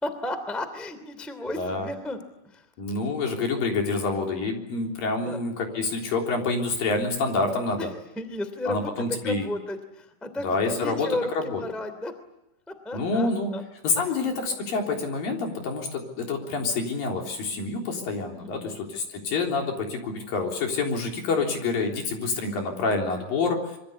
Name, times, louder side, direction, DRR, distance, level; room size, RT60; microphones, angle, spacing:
voice 1, 0.0-2.2 2.4-2.6 5.2-5.4 7.8-7.9 8.1-12.1 12.7-13.6 14.0-14.2 18.3-18.7, left 1 dB, ahead, 10 dB, 0.5 m, -34 dB
voice 2, 1.6-1.9 2.8-7.9 8.7-9.5 10.4-11.1 11.3-11.6 12.9-13.6 13.8-23.8, left 3 dB, 50° left, 1 dB, 5.0 m, -27 dB
26.0 x 24.0 x 8.5 m, 0.92 s
omnidirectional pair, 5.7 m